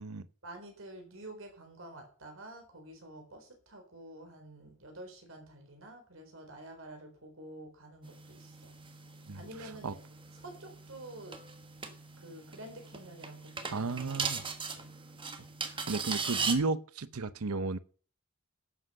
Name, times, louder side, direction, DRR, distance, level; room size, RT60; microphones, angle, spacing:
voice 1, 0.4-8.8 9.3-9.9 10.4-11.4 12.2-14.9, right 1 dB, 65° right, 4.1 m, -49 dB
sound 1, 8.0-16.5, right 5 dB, 25° right, 1.3 m, -39 dB
voice 2, 13.7-14.4 15.6-17.8, right 3 dB, 90° right, 0.8 m, -33 dB
11.5 x 7.7 x 6.6 m
head